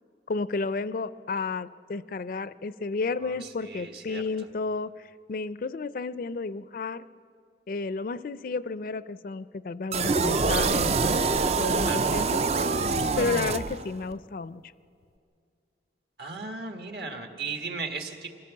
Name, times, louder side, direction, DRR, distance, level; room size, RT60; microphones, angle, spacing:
voice 1, 0.3-7.0 7.7-12.2 13.2-14.6, left 4 dB, 50° left, 15 dB, 0.4 m, -32 dB
voice 2, 3.2-4.5 11.8-12.1 16.2-18.3, right 4 dB, 60° right, 4 dB, 1.7 m, -37 dB
sound 1, 9.9-14.1, right 4 dB, 35° right, 0.4 m, -25 dB
25.0 x 16.0 x 7.1 m, 2.3 s
head